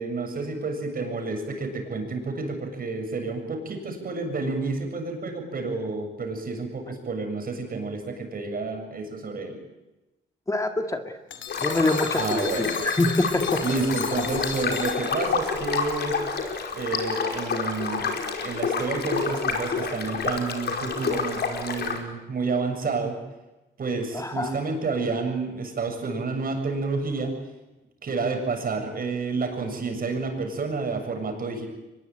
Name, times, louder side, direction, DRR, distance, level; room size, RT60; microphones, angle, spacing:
voice 1, 0.0-9.6 12.2-12.8 13.6-16.2 16.7-18.1 18.4-23.2 23.8-27.3 28.0-31.7, right 3 dB, 45° right, 5 dB, 7.3 m, -30 dB
voice 2, 10.5-11.0 11.6-13.6 24.1-24.6, left 2 dB, 15° left, 6 dB, 2.0 m, -25 dB
sound 1, 11.3-15.6, left 8 dB, 70° left, 2.7 m, -36 dB
sound 2, 11.5-22.0, left 5 dB, 55° left, 5.0 m, -28 dB
24.0 x 21.0 x 9.1 m, 1.0 s
cardioid pair, 90°, 20 cm